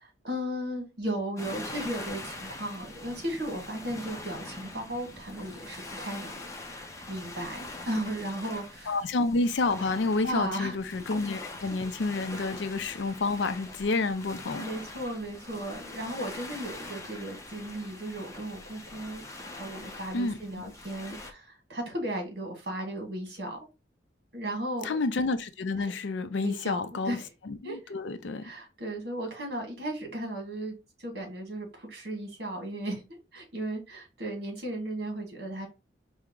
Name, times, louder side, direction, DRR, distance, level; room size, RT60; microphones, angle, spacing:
voice 1, 0.2-7.6 7.9-9.0 10.2-10.7 11.6-11.7 12.4-12.5 14.6-19.2 19.6-23.7 24.3-25.0 25.8-25.9 26.4-26.8 27.1-27.3 27.6-27.9 28.4-33.0 33.3-35.7, right 1 dB, 55° right, 1.7 m, -35 dB
sound 1, 1.4-21.3, left 2 dB, 15° left, 0.5 m, -43 dB
voice 2, 8.9-14.6 20.1-20.4 24.8-27.2 27.4-28.5, left 3 dB, 75° left, 0.5 m, -29 dB
4.5 x 2.1 x 3.7 m
head